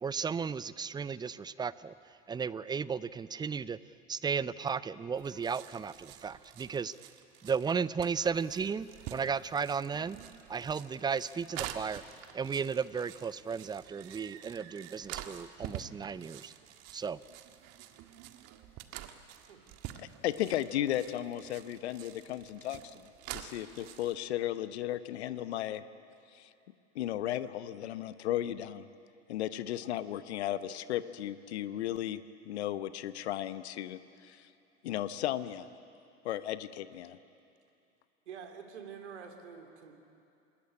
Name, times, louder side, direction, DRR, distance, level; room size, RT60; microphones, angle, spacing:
voice 1, 0.0-1.9 2.3-3.8 4.1-6.9 7.4-10.2 10.5-12.0 12.3-16.5 16.9-17.2, right 6 dB, 10° right, 18 dB, 0.6 m, -34 dB
sound 1, 5.1-24.2, right 12 dB, 45° right, 1.7 m, -48 dB
voice 2, 20.0-25.8 26.3-26.5 26.9-28.9 29.3-34.5 34.8-35.7 36.2-37.2, left 12 dB, 65° left, 13 dB, 1.0 m, -35 dB
voice 3, 38.3-39.9, right 7 dB, 70° right, 4 dB, 3.0 m, -47 dB
27.0 x 21.0 x 9.9 m, 2.6 s
figure-of-eight pair, 75°, 35 cm